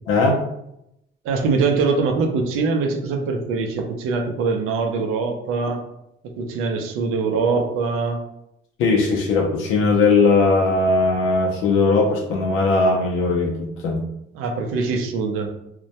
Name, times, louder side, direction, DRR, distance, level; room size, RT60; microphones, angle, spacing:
voice 1, 0.1-0.4 8.8-14.0, left 3 dB, 75° left, -1 dB, 0.5 m, -19 dB
voice 2, 1.2-5.8 6.2-8.2 14.3-15.5, right 4 dB, 90° right, 3 dB, 0.5 m, -23 dB
2.2 x 2.1 x 2.7 m, 0.80 s
cardioid pair, 180°, 21 cm